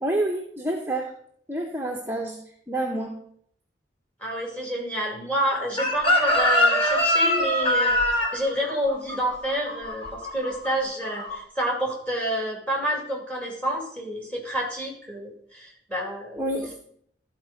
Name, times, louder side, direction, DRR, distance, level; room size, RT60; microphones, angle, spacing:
voice 1, 0.0-1.2 1.5-3.2 16.4-16.8, right 1 dB, 10° right, 0 dB, 0.7 m, -28 dB
voice 2, 4.2-8.0 8.3-16.8, equal, 5° left, -1 dB, 2.2 m, -29 dB
Chicken rooster, 5.8-10.7 11.0-11.4, left 1 dB, 30° left, 1.5 m, -23 dB
12.5 x 4.4 x 5.1 m, 0.66 s
head